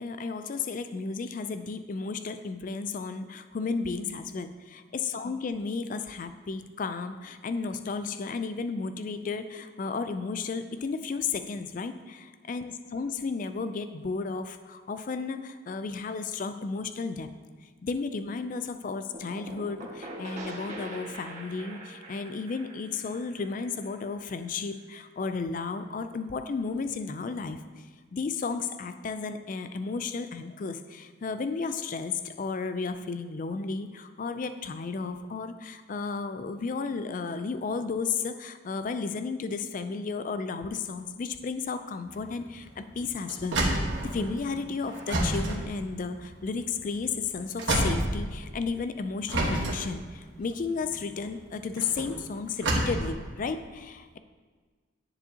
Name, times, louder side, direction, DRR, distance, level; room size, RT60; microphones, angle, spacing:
voice 1, 0.0-17.3 17.8-27.6 28.1-43.6 44.0-54.2, left 4 dB, 40° left, 10 dB, 0.3 m, -33 dB
sound 1, 19.1-24.7, right 1 dB, 35° right, 1.5 m, -43 dB
sound 2, 42.1-48.8 49.3-53.1, right 1 dB, 55° right, 1.3 m, -30 dB
9.6 x 6.9 x 2.8 m, 1.5 s
head